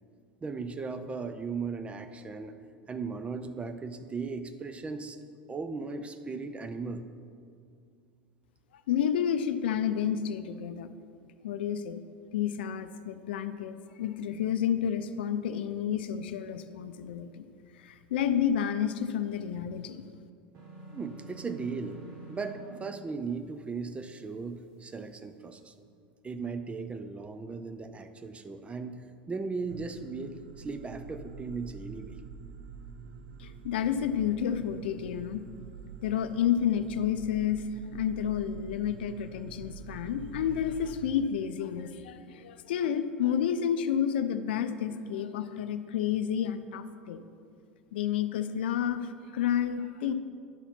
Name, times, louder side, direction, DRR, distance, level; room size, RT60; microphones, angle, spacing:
voice 1, 0.4-2.5 2.9-5.2 5.5-7.0 20.9-22.0 22.3-25.7 26.2-32.2, right 4 dB, 20° right, 9 dB, 0.6 m, -37 dB
voice 2, 8.9-10.9 11.4-12.0 12.3-17.5 17.8-20.0 33.4-35.4 36.0-47.2 47.9-50.1, left 9 dB, 70° left, 11 dB, 0.4 m, -30 dB
sound 1, 20.5-22.8, right 3 dB, 50° right, 1.5 m, -47 dB
sound 2, 29.7-41.0, right 6 dB, 75° right, 0.5 m, -46 dB
10.5 x 4.1 x 5.8 m, 2.3 s
hypercardioid pair, 80°, 6 cm